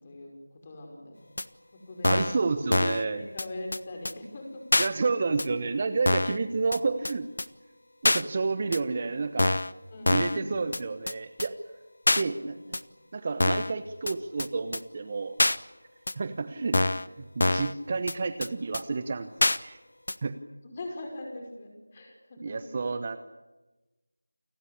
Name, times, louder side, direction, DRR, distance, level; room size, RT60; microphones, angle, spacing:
voice 1, 0.0-1.3 1.7-2.5 3.0-4.7 9.9-10.6 12.1-12.6 20.6-22.7, left 1 dB, 20° left, 2 dB, 5.5 m, -42 dB
sound 1, 1.4-1.5 2.0-2.4 2.7-3.0 3.4-3.5 3.7-3.8 4.1-4.2 4.7-4.9 5.4-5.5 6.1-6.4 6.7-6.8 7.1-7.2 7.4-7.5 8.0-8.2 8.7-8.8 9.4-9.7 10.1-10.4 10.7-10.8 11.1-11.2 11.4-11.5 12.1-12.2 12.7-12.8 13.4-13.7 14.1-14.2 14.4-14.5 14.7-14.8 15.4-15.6 16.1-16.2 16.7-17.1 17.4-17.7 18.1-18.2 18.4-18.5 18.7-18.8 19.4-19.6 20.1-20.2, left 2 dB, 60° left, 1.0 m, -25 dB
voice 2, 2.0-3.3 4.8-7.3 8.0-9.6 10.1-11.6 12.2-12.5 13.1-15.4 16.2-16.8 17.2-19.3 19.6-19.8 20.2-20.3 22.4-23.2, right 4 dB, 25° right, 11 dB, 1.0 m, -30 dB
29.0 x 19.0 x 8.5 m, 1.1 s
figure-of-eight pair, 170°, 0 cm